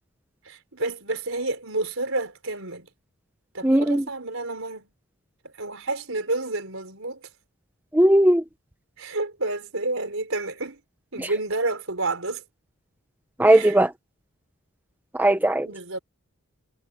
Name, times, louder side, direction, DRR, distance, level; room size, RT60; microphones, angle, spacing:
voice 1, 0.4-2.9 3.5-4.9 5.4-7.2 9.0-10.8 11.1-12.4 13.5-13.8 15.6-16.0, right 2 dB, 65° right, 4.7 m, -30 dB
voice 2, 3.6-4.0 7.9-8.4 11.2-11.3 13.4-13.9 15.1-15.7, right 1 dB, 10° right, 0.8 m, -18 dB
head